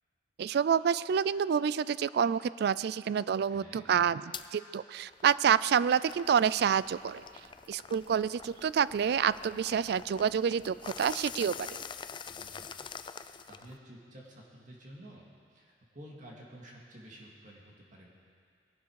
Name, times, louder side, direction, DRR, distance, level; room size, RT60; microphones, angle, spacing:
voice 1, 0.4-7.2 7.7-11.7, right 7 dB, 60° right, 18 dB, 0.3 m, -28 dB
voice 2, 3.5-3.9 12.2-12.9 13.5-18.1, right 1 dB, 45° right, -3 dB, 2.1 m, -51 dB
sound 1, 4.3-4.5 5.0-13.8, left 6 dB, 25° left, 0.4 m, -46 dB
20.5 x 12.0 x 4.7 m, 2.2 s
head